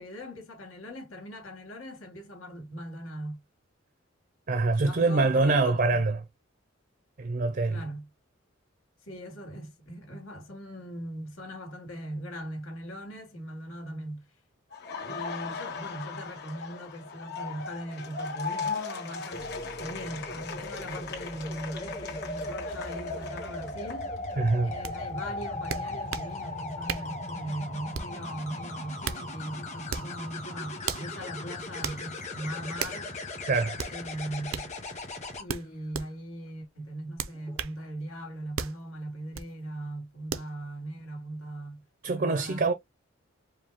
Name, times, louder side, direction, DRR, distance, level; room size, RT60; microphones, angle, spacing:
voice 1, 0.0-3.4 4.8-6.1 7.7-8.1 9.1-14.3 15.0-19.5 19.8-24.1 24.6-33.2 33.9-34.7 35.4-42.7, right 1 dB, 85° left, 2.2 m, -39 dB
voice 2, 4.5-6.2 7.2-7.8 24.4-24.7 33.5-33.8 42.0-42.7, right 3 dB, 45° right, 0.5 m, -25 dB
Laughter, 14.7-24.5 24.9-26.9, left 5 dB, 50° left, 1.6 m, -39 dB
sound 1, 19.3-35.4 37.3-37.6, left 2 dB, 35° left, 1.2 m, -38 dB
sound 2, 24.8-25.0 25.7-26.3 26.9-27.1 27.9-28.2 28.8-29.3 29.9-30.1 30.8-31.1 31.8-32.0 32.8-33.0 33.8-34.0 34.5-34.7 35.5-36.1 37.2-37.8 38.6-38.8 39.3-39.5 40.3-40.5, right 6 dB, 90° right, 0.6 m, -34 dB
5.1 x 2.2 x 3.5 m
head